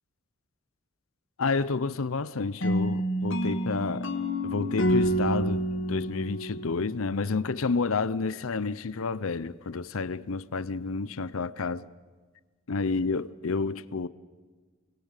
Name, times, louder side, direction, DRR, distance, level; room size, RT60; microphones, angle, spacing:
voice 1, 1.4-4.1 4.4-11.9 12.7-14.1, left 4 dB, 75° left, 0.7 m, -30 dB
sound 1, 2.6-7.5, equal, 60° left, 1.8 m, -28 dB
29.0 x 22.0 x 6.6 m
head